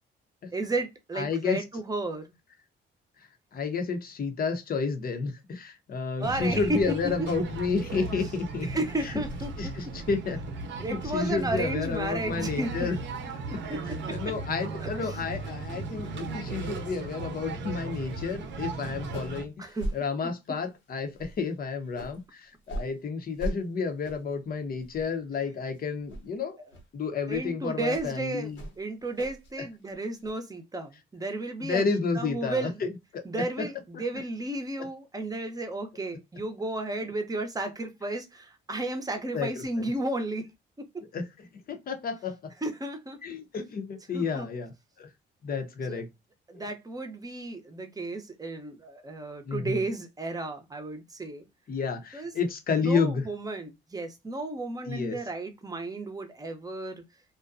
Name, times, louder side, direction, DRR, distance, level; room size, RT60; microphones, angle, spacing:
voice 1, 0.5-2.3 6.2-7.1 8.6-9.9 10.8-12.9 13.5-14.2 14.8-14.9 19.6-19.9 20.5-20.6 27.3-32.8 33.2-40.5 40.8-40.9 42.6-43.2 44.1-44.5 45.8-46.0 46.5-51.5 52.1-52.3 52.7-57.0, right 2 dB, 20° right, 0.8 m, -33 dB
voice 2, 1.1-1.6 3.5-8.7 9.0-9.1 9.6-10.4 10.9-13.0 14.1-26.6 26.9-28.6 31.6-32.9 33.4-33.6 33.9-34.0 39.3-39.9 41.1-41.2 41.7-42.5 43.2-44.7 45.0-45.1 45.4-46.1 46.5-46.7 49.5-49.8 51.7-53.3 54.9-55.2, left 5 dB, 50° left, 0.8 m, -31 dB
sound 1, 6.2-19.4, right 3 dB, 65° right, 0.7 m, -36 dB
sound 2, 17.4-17.6 17.9-18.3 18.6-18.7 19.0-19.4 19.8-20.0 20.4-20.7 21.1-22.2 22.6-22.9 23.4-23.6 24.0-24.3 24.8-25.3 25.6-25.8 26.1-26.3 26.7-26.9 27.3-27.5 27.9-28.1 28.5-29.5 29.8-30.3, right 1 dB, 70° left, 1.0 m, -39 dB
2.5 x 2.2 x 2.4 m
cardioid pair, 90°, 20 cm